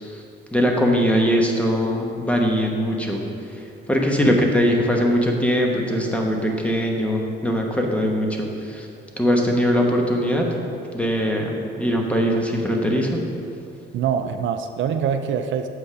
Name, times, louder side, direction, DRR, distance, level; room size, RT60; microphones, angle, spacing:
voice 1, 0.5-3.2 3.9-8.9 9.2-10.5 10.9-13.2, equal, 5° left, 1 dB, 1.1 m, -21 dB
voice 2, 13.9-15.7, right 7 dB, 70° right, 8 dB, 0.5 m, -24 dB
7.6 x 5.2 x 4.8 m, 2.6 s
cardioid pair, 90°, 20 cm